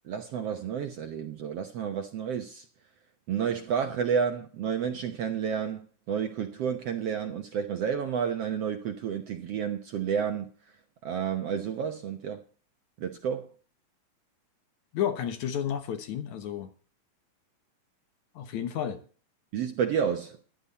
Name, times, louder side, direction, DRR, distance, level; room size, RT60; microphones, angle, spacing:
voice 1, 0.0-2.6 3.3-10.5 11.0-12.4 13.0-13.5 19.5-20.4, right 7 dB, 65° right, 1.6 m, -30 dB
voice 2, 14.9-16.7 18.4-19.0, left 9 dB, 65° left, 2.4 m, -31 dB
14.0 x 12.0 x 4.1 m
omnidirectional pair, 3.9 m